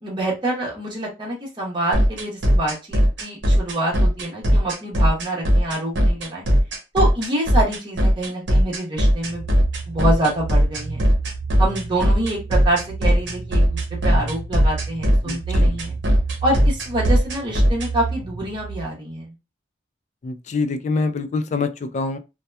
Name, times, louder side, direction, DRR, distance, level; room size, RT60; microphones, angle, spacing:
voice 1, 0.0-6.5 6.9-9.5 9.9-11.0 11.6-16.0 16.4-19.3, right 1 dB, 25° right, 0.9 m, -26 dB
sound 1, 1.9-17.9, equal, 80° right, 0.7 m, -17 dB
sound 2, 9.2-18.9, right 4 dB, 55° right, 0.4 m, -32 dB
voice 2, 15.3-15.7 20.2-22.2, left 4 dB, 40° left, 0.3 m, -25 dB
2.8 x 2.2 x 2.2 m
head